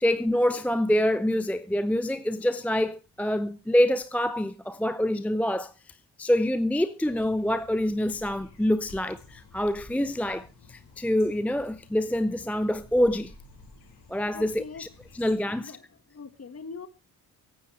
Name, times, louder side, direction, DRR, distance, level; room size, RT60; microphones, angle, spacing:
voice 1, 0.0-5.7 6.2-13.3 14.1-14.9 15.2-15.7, left 1 dB, 5° left, 0.6 m, -26 dB
sound 1, 7.0-15.3, left 3 dB, 60° left, 4.8 m, -51 dB
voice 2, 14.3-14.9 15.5-16.9, left 5 dB, 30° left, 1.7 m, -42 dB
24.5 x 9.7 x 3.3 m
figure-of-eight pair, 45°, 46 cm